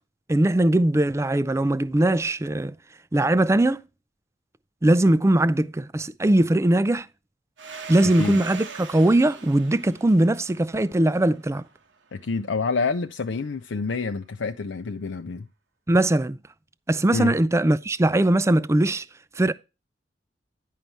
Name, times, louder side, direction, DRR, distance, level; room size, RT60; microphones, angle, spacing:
voice 1, 0.3-2.7 3.1-3.8 4.8-7.1 7.9-11.6 15.9-16.4 16.9-19.0 19.4-19.5, right 1 dB, 15° right, 0.4 m, -20 dB
Domestic sounds home sounds, 7.6-12.0, right 5 dB, 75° right, 1.3 m, -41 dB
voice 2, 8.0-8.4 12.1-15.5 17.1-17.3, left 4 dB, 80° left, 0.6 m, -28 dB
10.5 x 5.5 x 4.5 m
head